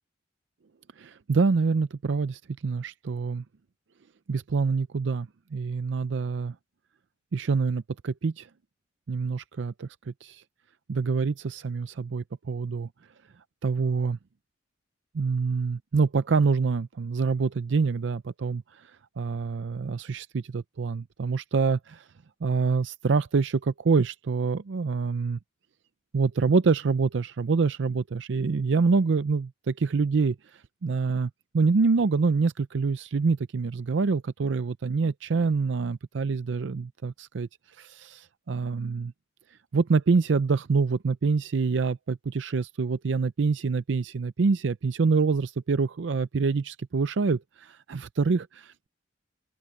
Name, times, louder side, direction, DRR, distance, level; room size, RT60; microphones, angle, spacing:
voice 1, 1.0-3.4 4.3-6.5 7.3-8.5 9.1-10.4 10.9-12.9 13.6-14.2 15.1-18.9 19.2-22.0 22.4-25.4 26.1-30.4 30.8-37.5 37.8-39.1 39.7-48.9, right 4 dB, 70° right, 0.5 m, -26 dB
open air
head